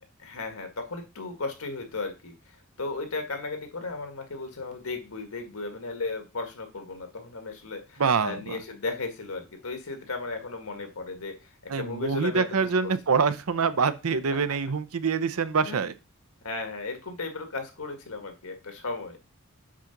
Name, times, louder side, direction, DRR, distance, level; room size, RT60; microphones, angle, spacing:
voice 1, 0.2-12.9 15.6-15.8 16.4-19.2, left 3 dB, 85° left, 6 dB, 1.8 m, -35 dB
voice 2, 8.0-8.6 11.7-15.9, right 5 dB, 85° right, 14 dB, 0.6 m, -25 dB
7.4 x 3.9 x 5.8 m, 0.28 s
head